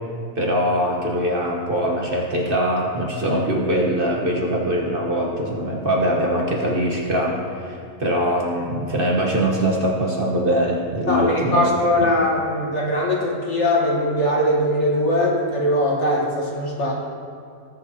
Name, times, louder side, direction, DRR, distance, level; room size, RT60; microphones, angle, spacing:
voice 1, 0.3-11.7, equal, 40° right, -2 dB, 1.4 m, -22 dB
voice 2, 11.1-16.9, left 1 dB, 50° left, -3 dB, 1.8 m, -21 dB
19.5 x 6.6 x 2.9 m, 2.4 s
omnidirectional pair, 1.6 m